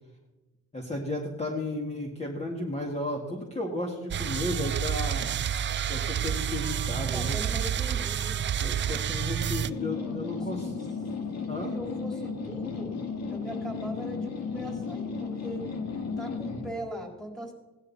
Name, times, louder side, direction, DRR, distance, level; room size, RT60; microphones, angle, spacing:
voice 1, 0.7-5.3 5.9-7.4 8.5-10.7 11.5-11.7, left 1 dB, 20° left, 0 dB, 2.0 m, -33 dB
sound 1, 4.1-9.7, right 9 dB, 40° right, 0.5 m, -29 dB
voice 2, 7.1-8.5 10.0-10.5 11.6-12.9 13.3-15.7 16.2-17.5, right 1 dB, ahead, 1 dB, 3.3 m, -40 dB
sound 2, 9.7-16.7, left 4 dB, 60° left, 2.0 m, -34 dB
16.5 x 10.5 x 4.2 m, 1.1 s
cardioid pair, 90°, 30 cm